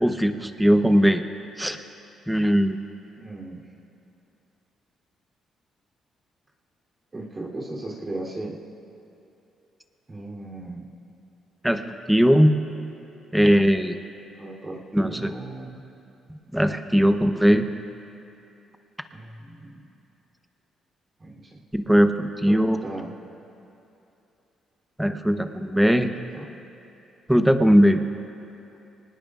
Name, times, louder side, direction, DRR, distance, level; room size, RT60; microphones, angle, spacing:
voice 1, 0.0-1.2 1.6-1.8 2.3-2.8 11.6-12.6 13.3-13.9 14.9-15.3 16.5-17.7 21.7-22.8 25.0-26.1 27.3-28.0, equal, 5° right, 7 dB, 0.9 m, -19 dB
voice 2, 3.2-3.6 7.1-8.6 10.1-10.9 14.4-15.9 17.5-17.7 19.1-19.8 21.2-21.6 22.5-23.1 26.3-26.4, right 2 dB, 30° right, -4 dB, 3.3 m, -37 dB
24.0 x 19.5 x 2.5 m, 2.8 s
cardioid pair, 90°, 0 cm